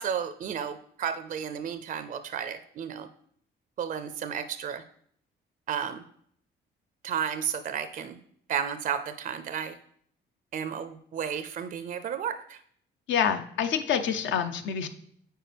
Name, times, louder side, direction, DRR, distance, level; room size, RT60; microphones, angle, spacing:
voice 1, 0.0-3.1 3.8-4.8 5.7-6.0 7.0-8.2 8.5-9.7 10.5-12.6, right 8 dB, 45° right, 10 dB, 0.4 m, -32 dB
voice 2, 13.1-14.9, left 8 dB, 70° left, 8 dB, 0.7 m, -27 dB
8.9 x 4.5 x 3.3 m, 0.65 s
cardioid pair, 90°, 20 cm